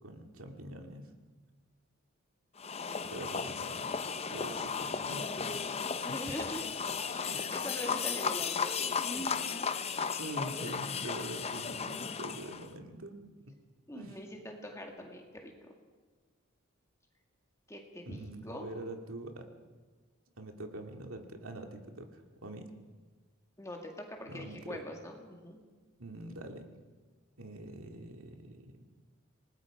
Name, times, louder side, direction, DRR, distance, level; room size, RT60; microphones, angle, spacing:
voice 1, 0.0-1.1 3.1-5.6 6.1-6.2 7.3-7.5 10.2-13.2 13.9-14.2 18.0-19.5 20.4-22.7 24.3-24.8 26.0-26.7 27.4-28.8, right 1 dB, 80° right, 4 dB, 2.2 m, -44 dB
sound 1, 2.6-12.7, left 6 dB, 30° left, 0.6 m, -35 dB
voice 2, 6.0-6.7 7.0-9.7 13.9-15.7 17.7-18.7 23.6-25.6, equal, 15° left, 2 dB, 2.0 m, -43 dB
27.0 x 19.5 x 5.0 m, 1.3 s
head